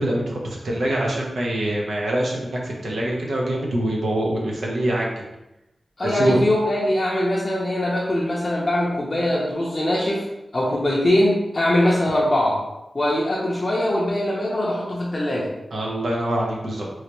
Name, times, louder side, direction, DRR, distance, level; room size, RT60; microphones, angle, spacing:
voice 1, 0.0-5.1 6.0-6.4 15.7-16.9, right 1 dB, 80° right, -2 dB, 0.9 m, -24 dB
voice 2, 6.0-10.3 10.5-12.6 12.9-15.5, left 1 dB, 35° left, -4 dB, 0.6 m, -22 dB
3.2 x 3.2 x 2.9 m, 0.94 s
wide cardioid pair, 115°, 0 cm